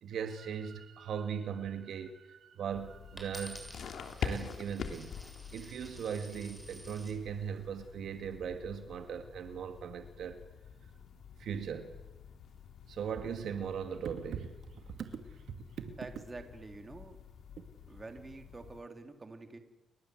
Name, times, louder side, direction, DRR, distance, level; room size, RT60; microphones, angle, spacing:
voice 1, 0.0-3.7 4.2-5.2 5.5-10.4 11.4-12.0 12.9-14.5 14.9-15.4 15.8-15.9, right 7 dB, 80° right, 7 dB, 2.4 m, -39 dB
sound 1, 2.7-18.8, left 7 dB, 75° left, 3.1 m, -47 dB
Coin (dropping), 3.2-7.2 7.9-8.3, right 1 dB, ahead, 7.5 m, -51 dB
voice 2, 16.0-17.2 17.9-19.6, right 3 dB, 25° right, 5 dB, 3.5 m, -47 dB
29.5 x 23.5 x 8.1 m, 1.1 s
cardioid pair, 105°, 0 cm